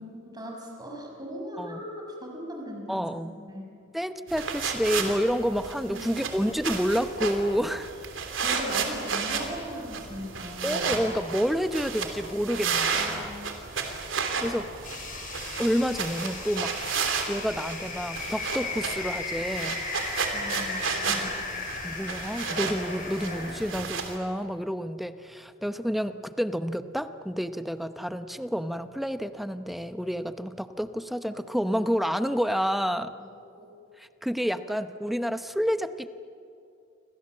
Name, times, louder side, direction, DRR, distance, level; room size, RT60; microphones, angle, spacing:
voice 1, 0.0-3.7 5.8-6.1 8.4-10.9 12.9-13.5 20.3-20.8 21.1-21.6 33.5-33.7, equal, 20° right, 1 dB, 6.1 m, -39 dB
voice 2, 2.9-3.4 3.9-7.9 10.6-13.3 14.4-14.7 15.6-16.8 17.3-19.8 21.1-21.3 21.8-33.1 34.0-36.1, equal, ahead, 10 dB, 0.8 m, -29 dB
sound 1, 4.3-24.2, right 5 dB, 80° right, 3.2 m, -32 dB
sound 2, 14.8-23.8, left 3 dB, 45° left, 7.4 m, -36 dB
29.0 x 26.0 x 7.6 m, 2.6 s
head